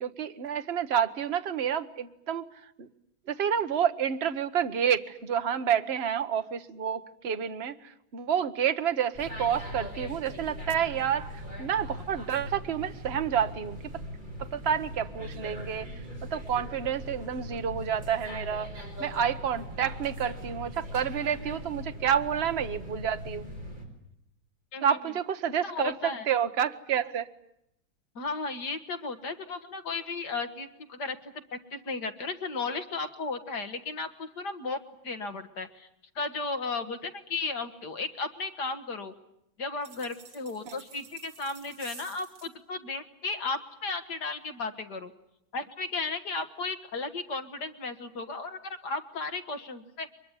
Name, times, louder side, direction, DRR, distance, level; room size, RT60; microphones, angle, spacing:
voice 1, 0.0-2.5 2.8-2.9 3.3-7.8 8.1-11.3 11.6-13.8 14.4-15.9 16.3-18.7 19.0-23.5 24.8-27.3 40.7-40.8, right 8 dB, 40° right, 9 dB, 1.2 m, -29 dB
sound 1, 9.1-23.8, equal, 25° right, 5.3 m, -40 dB
voice 2, 25.6-26.3 28.2-31.2 31.5-35.9 36.2-39.1 39.6-45.1 45.5-50.1, left 3 dB, 60° left, 7 dB, 2.2 m, -35 dB
sound 2, 39.8-42.5, right 5 dB, 85° right, 3.3 m, -50 dB
23.5 x 22.0 x 9.7 m, 0.80 s
omnidirectional pair, 2.1 m